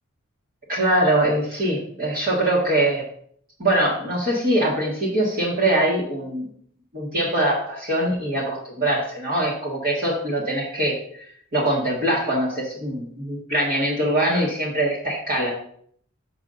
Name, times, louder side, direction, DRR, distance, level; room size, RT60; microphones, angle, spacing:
voice 1, 0.7-3.0 3.6-6.5 6.9-11.2 11.5-15.5, right 1 dB, 40° right, -6 dB, 1.6 m, -23 dB
7.1 x 5.4 x 3.8 m, 0.63 s
head